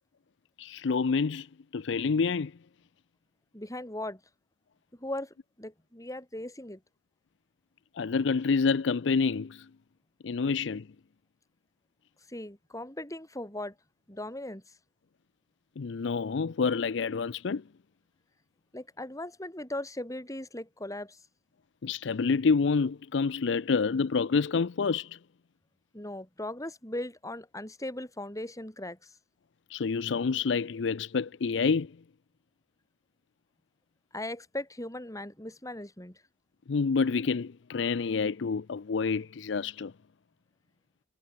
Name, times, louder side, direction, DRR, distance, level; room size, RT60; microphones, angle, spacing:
voice 1, 0.6-1.5 1.7-2.5 7.9-9.7 10.2-10.9 15.8-17.6 21.8-25.2 29.7-32.0 36.7-39.9, left 5 dB, 70° left, 0.5 m, -28 dB
voice 2, 3.5-4.2 5.0-6.8 12.3-13.7 14.1-14.6 18.7-21.2 25.9-29.1 34.1-36.2, left 1 dB, 20° left, 6.2 m, -38 dB
head